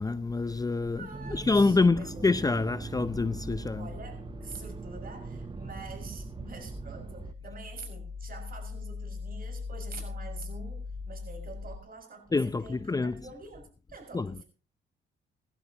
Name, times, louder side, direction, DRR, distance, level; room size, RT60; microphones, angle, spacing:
voice 1, 0.0-3.9 12.3-13.2 14.1-14.3, left 3 dB, 20° left, 0.6 m, -27 dB
voice 2, 0.9-2.3 3.8-14.4, right 4 dB, 45° right, 6.1 m, -46 dB
Accelerating revving vroom, 1.1-7.3, right 4 dB, 25° right, 0.8 m, -41 dB
sound 1, 1.4-11.8, left 4 dB, 40° left, 3.1 m, -42 dB
19.5 x 15.0 x 3.0 m
cardioid pair, 90°, 20 cm